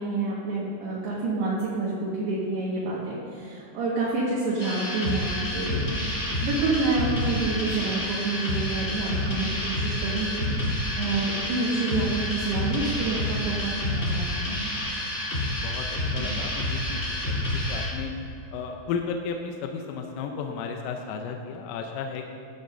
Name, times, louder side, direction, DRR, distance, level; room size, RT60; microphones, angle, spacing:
voice 1, 0.0-10.5 11.0-14.3, right 3 dB, 60° right, -6 dB, 3.2 m, -28 dB
sound 1, 4.6-17.9, left 1 dB, 30° left, 1.3 m, -29 dB
voice 2, 15.3-15.9 16.1-18.1 18.5-22.3, left 6 dB, 80° left, 3 dB, 3.3 m, -34 dB
17.0 x 12.5 x 2.7 m, 2.9 s
omnidirectional pair, 5.9 m